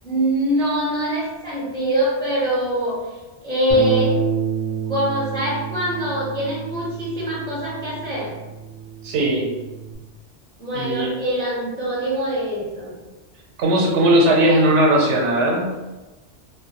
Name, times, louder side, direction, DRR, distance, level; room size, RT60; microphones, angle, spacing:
voice 1, 0.0-3.0 3.4-4.1 4.9-8.3 10.6-12.9, right 1 dB, 5° left, -7 dB, 0.5 m, -23 dB
Bass guitar, 3.7-10.0, right 6 dB, 55° right, 0.5 m, -29 dB
voice 2, 9.0-9.5 10.7-11.1 13.6-15.7, right 1 dB, 80° right, -2 dB, 0.9 m, -18 dB
2.2 x 2.2 x 2.8 m, 1.1 s
omnidirectional pair, 1.2 m